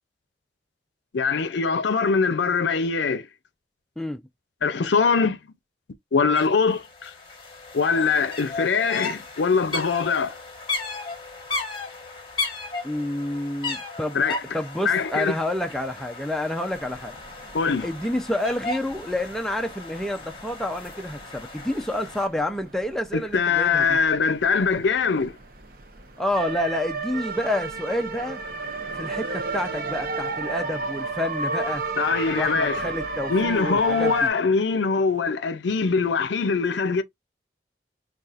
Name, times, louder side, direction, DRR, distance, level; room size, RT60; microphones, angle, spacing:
voice 1, 1.1-3.3 4.6-5.4 6.1-7.1 7.7-10.4 14.1-14.4 14.8-15.3 17.5-17.9 23.1-25.4 32.0-32.9 33.3-37.0, left 5 dB, 80° left, 0.5 m, -22 dB
sound 1, 6.3-6.5 6.7-22.3, left 3 dB, 30° left, 1.0 m, -35 dB
voice 2, 12.8-14.2 14.5-17.2 17.8-24.0 26.2-28.4 29.0-31.8 32.3-34.3, left 1 dB, ahead, 0.3 m, -29 dB
sound 2, 16.7-34.3, right 3 dB, 55° right, 0.7 m, -34 dB
4.0 x 2.3 x 2.4 m
head